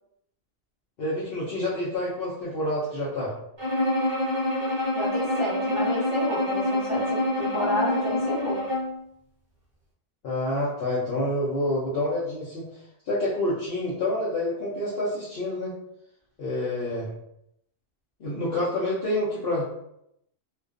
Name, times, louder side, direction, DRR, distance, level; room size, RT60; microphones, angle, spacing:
voice 1, 1.0-3.3 10.2-12.6 13.1-15.7 16.4-17.1 18.2-19.6, left 1 dB, 60° left, -8 dB, 0.8 m, -28 dB
Bowed string instrument, 3.6-9.0, left 1 dB, 40° right, 0.4 m, -26 dB
voice 2, 4.9-8.6, left 1 dB, 25° left, -7 dB, 0.9 m, -30 dB
2.4 x 2.2 x 2.4 m, 0.78 s
omnidirectional pair, 1.2 m